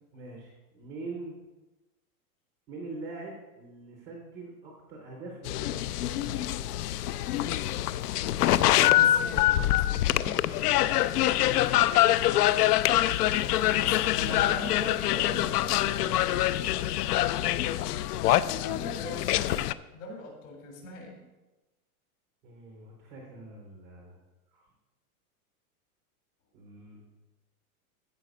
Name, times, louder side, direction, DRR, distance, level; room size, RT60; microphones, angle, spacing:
voice 1, 0.1-1.4 2.7-6.7 10.8-12.2 15.8-16.5 22.4-24.2 24.5-24.6 26.5-27.0, right 3 dB, 5° right, 0 dB, 0.4 m, -44 dB
sound 1, 5.4-19.7, left 14 dB, 85° left, 0.6 m, -25 dB
voice 2, 8.6-10.3 13.8-15.7 17.8-19.6 19.9-21.2, left 2 dB, 60° left, 1 dB, 3.6 m, -40 dB
15.0 x 5.2 x 5.1 m, 1.1 s
supercardioid pair, 175°, 45 cm